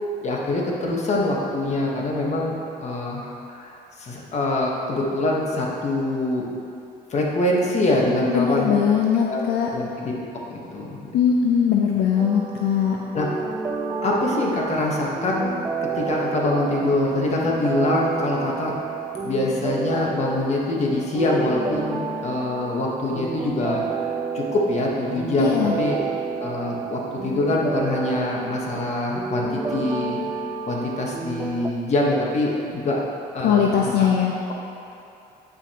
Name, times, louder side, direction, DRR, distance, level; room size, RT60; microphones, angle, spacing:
voice 1, 0.0-3.7 4.0-6.5 7.1-8.8 9.3-9.4 9.7-10.1 10.5-11.1 13.1-13.3 14.0-15.5 15.8-18.9 19.2-23.8 24.3-26.0 26.4-30.2 30.6-33.0 33.3-34.1, left 2 dB, 40° left, -2 dB, 1.3 m, -24 dB
voice 2, 8.3-9.7 11.1-13.0 25.4-25.8 33.4-34.3, left 7 dB, 75° left, 0 dB, 0.6 m, -20 dB
sound 1, 12.2-31.7, right 5 dB, 20° right, 0.3 m, -30 dB
8.9 x 5.9 x 3.0 m, 2.7 s
cardioid pair, 110°, 17 cm